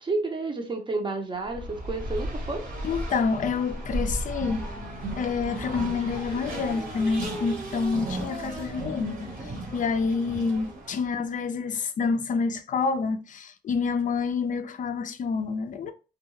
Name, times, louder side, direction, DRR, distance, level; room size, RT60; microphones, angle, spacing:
voice 1, 0.0-2.7 10.8-11.4, right 3 dB, 25° right, 0.7 m, -31 dB
Race car auto racing, 1.4-11.1, right 1 dB, 45° right, 1.0 m, -35 dB
voice 2, 2.8-4.7 5.2-9.2 9.7-15.9, left 5 dB, 40° left, 0.4 m, -28 dB
2.3 x 2.2 x 3.0 m
cardioid pair, 90°, 20 cm